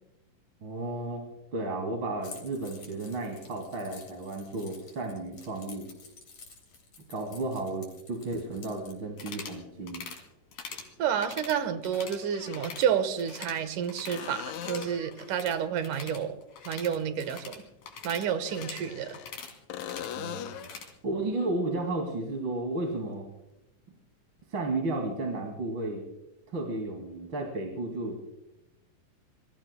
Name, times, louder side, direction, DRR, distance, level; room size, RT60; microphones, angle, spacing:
voice 1, 0.6-1.2 1.5-5.9 7.1-10.0 20.2-20.7 21.0-23.3 24.5-26.0 26.5-28.2, right 2 dB, 40° right, 1 dB, 2.9 m, -33 dB
Keys jangling, 2.2-9.0, left 5 dB, 55° left, 4.7 m, -51 dB
sound 1, 8.7-8.8 10.9-11.0 12.2-13.0 14.1-15.2 18.3-19.4 19.7-20.8 24.4-24.5, left 10 dB, 70° left, 2.0 m, -40 dB
sound 2, 9.1-9.6 9.9-10.2 10.5-10.9 11.2-12.2 12.5-12.9 13.2-14.3 14.5-20.9, left 5 dB, 90° left, 4.6 m, -44 dB
voice 2, 11.0-16.4 16.7-17.6 18.0-19.2, right 8 dB, 75° right, 11 dB, 2.7 m, -30 dB
27.5 x 23.5 x 2.3 m, 0.90 s
omnidirectional pair, 3.8 m